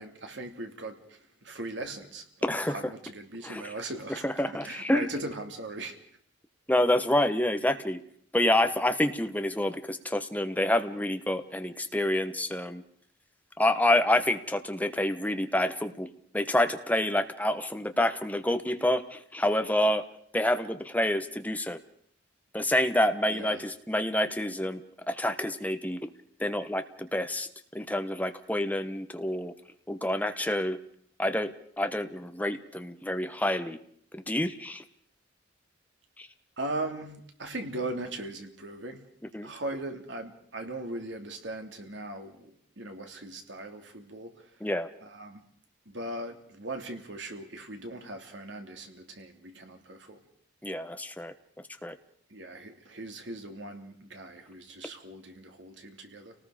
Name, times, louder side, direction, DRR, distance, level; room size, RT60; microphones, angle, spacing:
voice 1, 0.0-6.0 23.3-23.6 36.6-39.0 39.4-44.5 45.0-45.4 45.9-50.2 52.3-56.3, right 2 dB, 65° right, 4 dB, 2.9 m, -39 dB
voice 2, 2.4-2.8 3.4-3.6 4.2-5.1 6.7-8.0 8.3-12.8 13.6-16.1 16.3-20.0 20.3-21.8 22.5-24.8 25.1-26.0 26.4-27.5 27.7-29.5 29.9-30.8 31.2-33.8 34.1-34.8 36.2-36.3 39.3-39.5 44.6-44.9 50.6-51.3 51.8-51.9, left 1 dB, 10° left, 8 dB, 1.2 m, -28 dB
30.0 x 19.0 x 5.1 m, 0.62 s
head